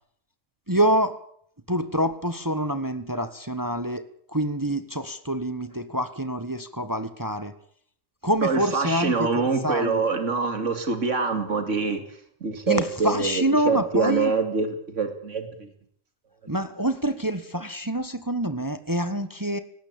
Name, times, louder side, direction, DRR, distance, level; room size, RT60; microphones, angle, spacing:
voice 1, 0.7-1.2 1.7-7.5 8.2-10.0 12.7-14.3 16.5-19.6, right 1 dB, 15° right, 11 dB, 1.2 m, -26 dB
voice 2, 8.4-12.0 12.4-15.7, right 4 dB, 60° right, 7 dB, 3.0 m, -25 dB
19.0 x 16.0 x 8.7 m, 0.62 s
omnidirectional pair, 1.4 m